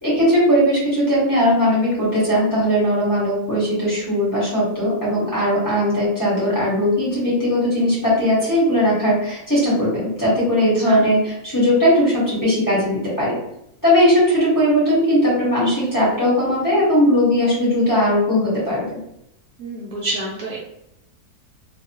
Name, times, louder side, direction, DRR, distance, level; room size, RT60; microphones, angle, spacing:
voice 1, 0.0-13.3 13.8-18.9, equal, 15° left, -9 dB, 1.0 m, -18 dB
voice 2, 19.6-20.6, right 1 dB, 70° right, -3 dB, 0.9 m, -28 dB
2.7 x 2.1 x 2.8 m, 0.80 s
omnidirectional pair, 1.7 m